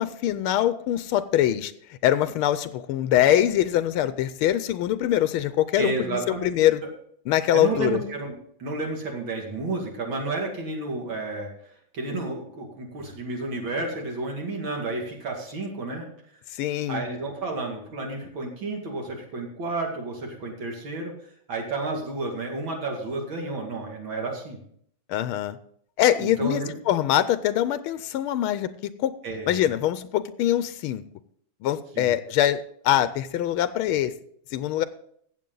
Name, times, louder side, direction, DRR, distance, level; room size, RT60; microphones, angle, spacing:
voice 1, 0.0-1.7 2.0-6.8 7.3-8.0 16.6-17.0 25.1-25.6 26.0-29.1 29.5-31.0 31.6-34.1 34.5-34.8, left 12 dB, 90° left, 14 dB, 1.5 m, -23 dB
voice 2, 5.8-6.7 7.5-8.3 8.6-11.5 11.9-16.1 16.9-21.1 21.5-24.6 26.2-26.7 29.2-29.8 31.9-32.1, right 2 dB, 65° right, 0 dB, 3.0 m, -31 dB
15.0 x 7.9 x 3.9 m, 0.66 s
omnidirectional pair, 2.3 m